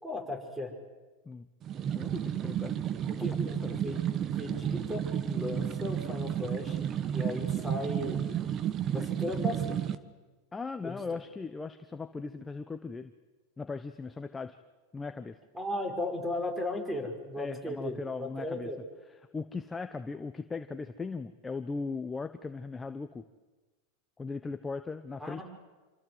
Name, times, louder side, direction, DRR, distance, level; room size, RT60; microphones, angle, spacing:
voice 1, 0.0-0.7 3.1-8.2 8.9-9.8 10.8-11.0 15.5-18.8 25.2-25.4, left 1 dB, 5° right, 5 dB, 5.6 m, -36 dB
sound 1, 1.6-10.0, right 10 dB, 35° right, 1.3 m, -32 dB
voice 2, 1.9-2.8 3.3-3.7 10.5-13.1 13.6-14.6 14.9-15.4 17.4-18.7 19.3-23.2 24.2-25.4, left 4 dB, 15° left, 9 dB, 1.0 m, -38 dB
27.0 x 25.0 x 8.0 m, 1.2 s
supercardioid pair, 120°, 0 cm